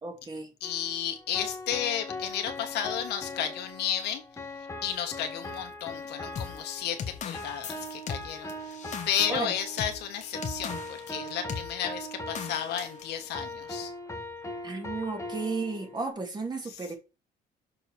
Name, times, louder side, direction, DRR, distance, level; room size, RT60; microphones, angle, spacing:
voice 1, 0.0-0.5 9.3-9.6 14.6-17.0, right 3 dB, 25° right, 1.8 m, -33 dB
voice 2, 0.6-4.2 4.8-8.8 9.1-13.9, left 9 dB, 75° left, 1.4 m, -33 dB
sound 1, 0.6-16.1, left 1 dB, 15° left, 1.5 m, -40 dB
sound 2, 6.4-11.1 11.5-11.7 12.4-13.0, left 7 dB, 45° left, 1.1 m, -38 dB
6.6 x 4.1 x 4.4 m
cardioid pair, 110°, 17 cm